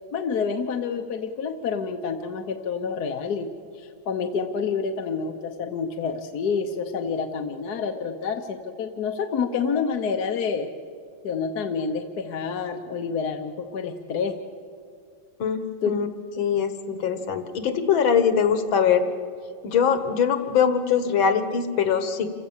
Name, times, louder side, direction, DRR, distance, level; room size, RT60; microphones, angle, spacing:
voice 1, 0.1-3.5 3.8-10.7 11.2-14.3 15.8-15.9, left 5 dB, 60° left, 5 dB, 1.4 m, -28 dB
voice 2, 15.4-16.1 16.4-19.1 19.6-22.3, left 7 dB, 85° left, 10 dB, 2.0 m, -22 dB
28.0 x 16.0 x 7.2 m, 2.2 s
omnidirectional pair, 2.1 m